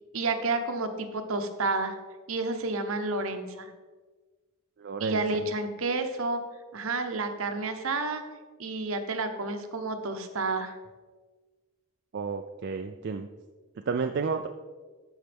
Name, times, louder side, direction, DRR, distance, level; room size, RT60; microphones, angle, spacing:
voice 1, 0.1-1.9 2.3-3.7 5.0-6.4 6.7-8.2 8.6-10.7, right 3 dB, 65° right, 7 dB, 0.9 m, -30 dB
voice 2, 4.8-5.4 12.1-13.3 13.9-14.5, right 5 dB, 50° right, 5 dB, 0.4 m, -31 dB
13.5 x 5.5 x 3.5 m, 1.3 s
head